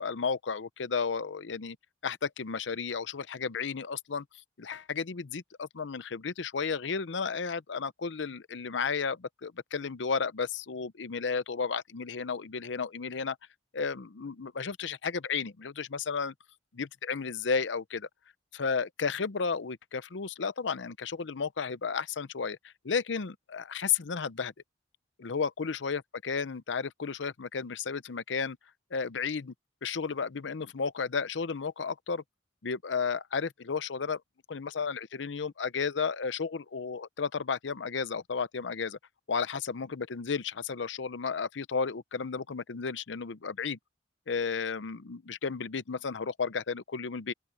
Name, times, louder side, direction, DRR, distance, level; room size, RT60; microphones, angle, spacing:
voice 1, 0.0-1.8 2.0-4.2 4.6-13.4 13.7-16.3 16.7-18.1 18.5-24.5 25.2-28.6 28.9-29.5 29.8-32.2 32.6-34.2 34.5-39.0 39.3-43.8 44.3-47.3, left 5 dB, 80° left, 0.7 m, -33 dB
open air
head